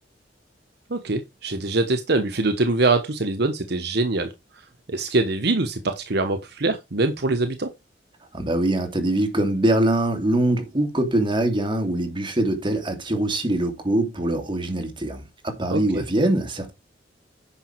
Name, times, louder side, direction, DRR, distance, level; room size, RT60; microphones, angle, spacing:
voice 1, 0.9-7.7 15.7-16.0, right 2 dB, 65° right, 1.1 m, -24 dB
voice 2, 8.3-16.7, right 1 dB, 30° right, 2.9 m, -23 dB
10.0 x 5.9 x 4.6 m
head